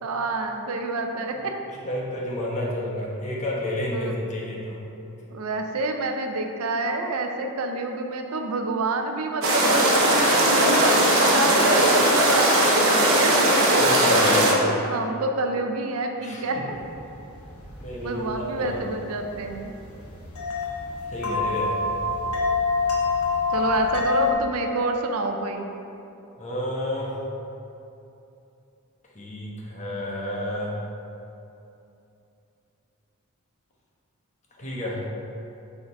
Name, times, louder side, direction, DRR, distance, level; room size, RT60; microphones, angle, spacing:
voice 1, 0.0-1.5 3.9-4.1 5.3-10.0 10.3-13.5 13.7-13.8 14.2-14.6 14.8-16.6 18.0-19.7 21.2-21.4 23.5-25.7, right 2 dB, 75° right, 4 dB, 0.5 m, -28 dB
voice 2, 1.7-4.8 13.8-14.7 16.2-16.7 17.8-18.8 21.1-21.8 26.4-27.2 29.1-30.8 34.6-35.0, left 1 dB, 35° left, -4 dB, 1.1 m, -30 dB
sound 1, 9.4-14.5, right 1 dB, 60° right, 1.0 m, -19 dB
sound 2, 16.7-24.3, left 4 dB, 70° left, 1.1 m, -27 dB
6.4 x 3.8 x 4.6 m, 2.8 s
head